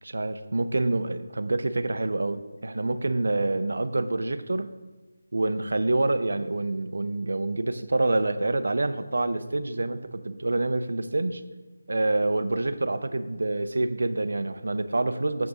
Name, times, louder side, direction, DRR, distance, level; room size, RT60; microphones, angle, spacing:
voice 1, 0.0-4.7 5.3-11.4 11.9-15.5, right 2 dB, 70° right, 12 dB, 0.5 m, -27 dB
7.0 x 6.0 x 3.9 m, 1.2 s
figure-of-eight pair, 175°, 0 cm